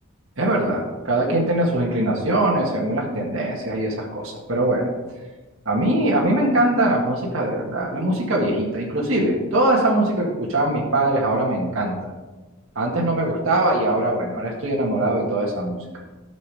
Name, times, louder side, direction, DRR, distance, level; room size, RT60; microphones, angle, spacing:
voice 1, 0.4-4.9 5.7-12.1 12.8-15.8, right 1 dB, 65° right, -3 dB, 1.9 m, -22 dB
12.5 x 6.3 x 4.8 m, 1.2 s
head